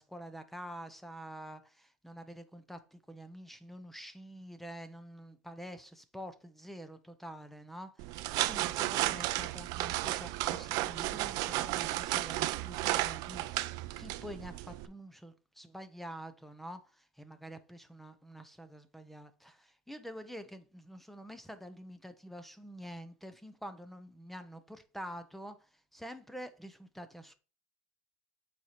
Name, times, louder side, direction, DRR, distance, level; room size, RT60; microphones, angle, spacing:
voice 1, 0.0-27.3, equal, 5° left, 0.6 m, -47 dB
sound 1, 8.0-14.9, right 17 dB, 60° right, 0.4 m, -33 dB
8.1 x 4.2 x 3.0 m
supercardioid pair, 100°, 7 cm